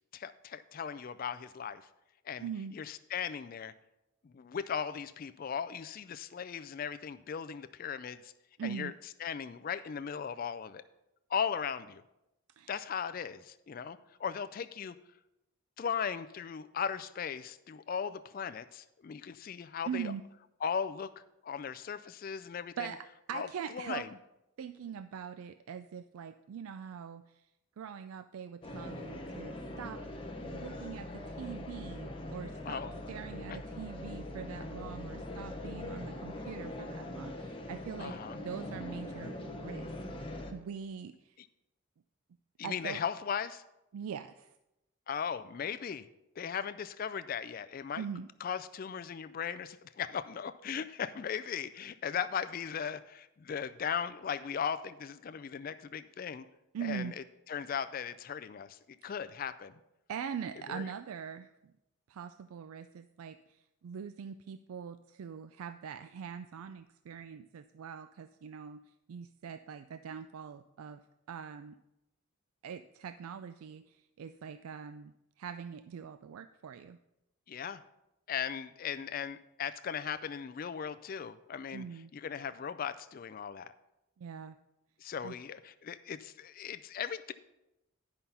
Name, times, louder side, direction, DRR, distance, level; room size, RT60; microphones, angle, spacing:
voice 1, 0.1-1.9 2.3-3.7 4.2-8.3 8.6-8.9 9.2-10.8 11.3-12.0 12.7-14.9 15.8-20.1 20.6-21.1 21.4-22.9 23.3-23.5 23.7-24.1 32.6-32.9 33.5-33.6 38.0-38.4 41.4-41.5 42.6-43.6 45.1-46.1 46.4-48.0 48.4-56.4 56.8-59.7 60.7-60.9 77.5-77.8 78.3-81.8 82.1-83.7 85.0-87.3, left 7 dB, 40° left, 13 dB, 0.3 m, -37 dB
voice 2, 2.4-2.8 8.6-8.9 12.6-12.7 19.9-20.2 22.8-24.1 24.6-27.2 27.8-30.0 30.5-32.8 33.1-39.9 40.5-41.4 42.6-43.0 43.9-44.5 48.0-48.3 56.7-57.1 59.0-59.1 60.1-61.5 62.1-63.6 63.8-68.8 69.1-71.0 71.3-71.7 72.6-75.1 75.4-77.0 81.7-82.1 84.2-84.6 85.2-85.4, right 7 dB, 80° right, 11 dB, 0.4 m, -42 dB
sound 1, 28.6-40.5, left 1 dB, 25° left, 0.9 m, -42 dB
10.5 x 5.6 x 5.5 m, 0.91 s
head